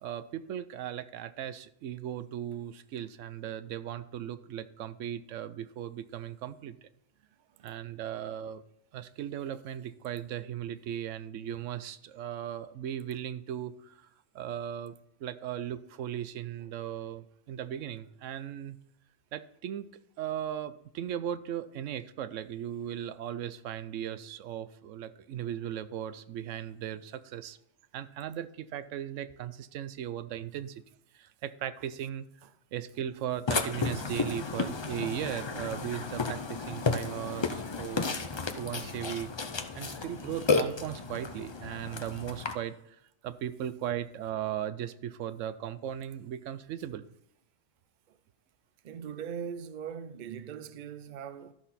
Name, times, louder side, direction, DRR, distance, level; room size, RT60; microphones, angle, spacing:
voice 1, 0.0-6.9 7.6-8.6 8.9-14.0 14.3-14.9 15.2-18.8 19.3-19.9 20.2-27.6 27.9-30.8 31.1-32.2 32.7-38.2 38.6-39.3 39.7-42.8 43.2-47.1, right 10 dB, 85° right, 1.0 m, -37 dB
Burping eructation, 33.5-42.5, left 4 dB, 35° left, 0.4 m, -32 dB
voice 2, 48.8-51.5, right 7 dB, 55° right, 0.6 m, -40 dB
13.0 x 6.0 x 4.1 m
omnidirectional pair, 1.3 m